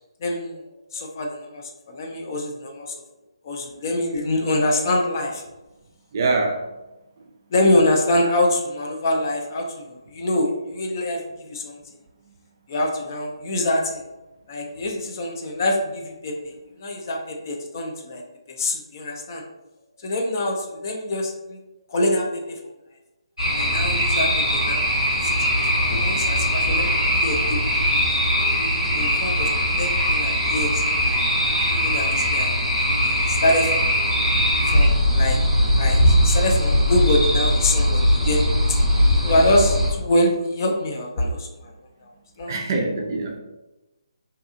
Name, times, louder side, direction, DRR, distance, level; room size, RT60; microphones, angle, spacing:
voice 1, 0.2-3.0 3.4-5.4 7.5-11.8 12.7-14.0 14.5-16.5 16.8-18.2 18.5-19.4 20.0-21.6 21.9-22.6 23.5-24.8 25.1-25.4 25.7-27.8 28.9-31.2 31.7-32.5 33.0-33.9 34.7-35.4 35.8-38.5 39.2-41.7 42.4-42.5, left 1 dB, 35° left, 1 dB, 0.4 m, -25 dB
voice 2, 6.1-6.7 42.5-43.4, right 3 dB, 35° right, 3 dB, 0.4 m, -24 dB
sound 1, 23.4-39.9, equal, 85° left, 1.1 m, -20 dB
2.7 x 2.3 x 2.5 m, 1.0 s
figure-of-eight pair, 145°, 3 cm